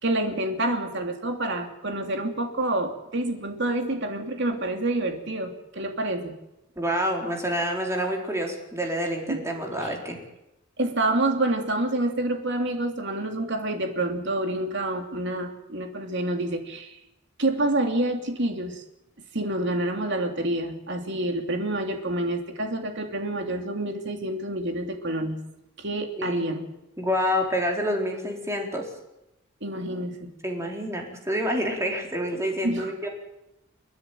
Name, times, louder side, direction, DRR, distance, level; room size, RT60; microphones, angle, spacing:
voice 1, 0.0-6.3 9.3-9.4 9.8-9.9 10.8-17.0 17.4-18.8 19.3-25.4 25.8-26.7 29.6-30.3 32.6-32.9, right 1 dB, 60° right, 4 dB, 2.9 m, -28 dB
voice 2, 6.8-10.2 26.2-26.5 27.0-28.9 30.4-33.1, equal, 15° right, 1 dB, 4.0 m, -28 dB
30.0 x 10.5 x 9.4 m, 0.91 s
head